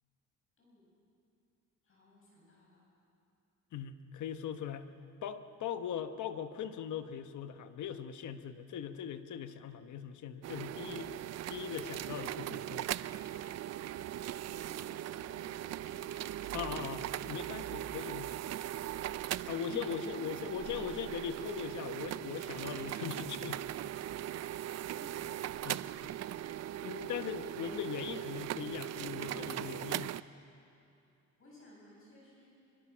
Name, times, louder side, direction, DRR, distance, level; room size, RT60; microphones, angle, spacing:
voice 1, 0.6-1.0 1.8-2.8 14.4-16.4 19.9-20.7 24.9-25.4 31.4-32.5, left 1 dB, 45° left, -4 dB, 7.6 m, -58 dB
voice 2, 3.7-4.9 5.2-11.1 11.5-12.9 16.5-18.3 19.5-23.6 25.6-25.8 26.8-30.2, left 8 dB, 70° left, 9 dB, 1.2 m, -40 dB
sound 1, 10.4-30.2, right 12 dB, 55° right, 0.5 m, -39 dB
25.0 x 23.0 x 6.3 m, 2.7 s
cardioid pair, 150°, 30 cm